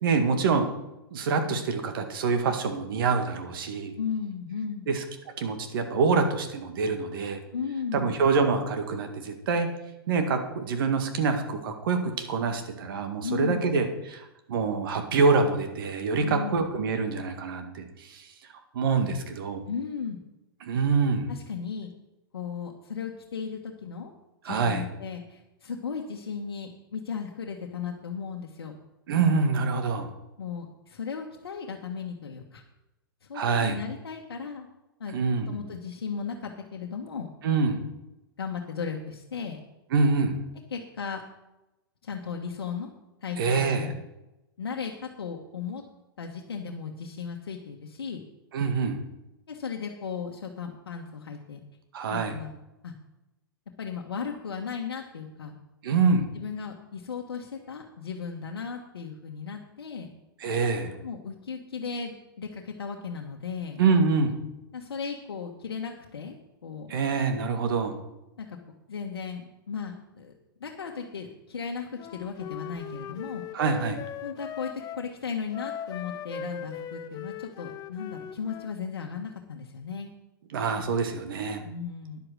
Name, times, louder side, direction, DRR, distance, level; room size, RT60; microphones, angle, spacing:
voice 1, 0.0-0.7 1.1-3.9 4.9-5.0 5.4-7.4 7.9-9.7 10.1-18.3 18.7-19.6 20.6-21.3 24.5-24.9 29.1-30.1 33.3-33.8 35.1-35.6 37.4-37.9 39.9-40.4 43.4-43.9 48.5-49.0 51.9-52.4 55.8-56.3 60.4-61.0 63.8-64.4 66.9-68.0 73.5-74.0 80.5-81.6, right 4 dB, 60° right, 6 dB, 1.9 m, -26 dB
voice 2, 4.0-4.9 7.5-8.1 13.2-13.7 16.2-16.6 19.7-20.2 21.3-21.9 22.3-24.1 24.4-28.7 30.4-32.6 33.3-34.7 35.0-35.2 35.5-37.3 38.4-39.6 40.7-41.2 42.0-42.9 43.2-44.0 44.6-45.8 46.2-48.2 49.5-51.6 52.1-52.5 52.8-52.9 53.8-55.5 56.3-60.1 61.0-63.8 64.7-66.9 68.4-68.6 68.9-70.3 70.6-73.5 74.2-80.1 81.6-82.2, left 6 dB, 80° left, 1 dB, 1.3 m, -36 dB
Wind instrument woodwind instrument, 71.9-75.0 75.5-78.8, left 8 dB, 30° left, 0.8 m, -39 dB
10.5 x 7.9 x 6.3 m, 0.96 s
hypercardioid pair, 115°, 13 cm